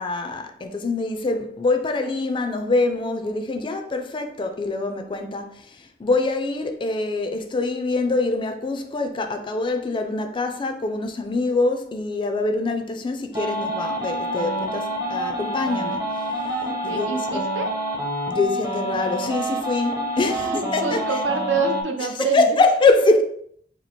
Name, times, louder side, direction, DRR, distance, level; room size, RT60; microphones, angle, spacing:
voice 1, 0.0-16.1 16.8-17.4 18.3-21.2 22.3-23.3, left 3 dB, 25° left, 0.3 m, -24 dB
sound 1, 13.3-21.8, right 1 dB, 20° right, 0.6 m, -27 dB
voice 2, 16.6-17.7 20.3-22.6 23.0-23.1, right 4 dB, 80° right, 0.5 m, -27 dB
2.9 x 2.4 x 4.1 m
head